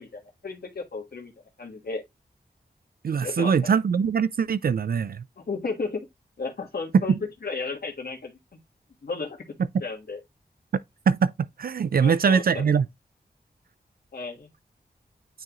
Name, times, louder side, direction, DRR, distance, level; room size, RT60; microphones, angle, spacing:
voice 1, 0.0-1.3 1.6-2.0 3.2-3.8 5.4-6.1 6.4-8.4 9.0-9.4 9.8-10.2 12.0-12.7 14.1-14.5, left 4 dB, 70° left, 1.4 m, -33 dB
voice 2, 3.0-5.2 11.1-11.3 11.6-12.8, right 6 dB, 65° right, 0.4 m, -22 dB
9.0 x 3.7 x 2.9 m
wide cardioid pair, 70°, 16 cm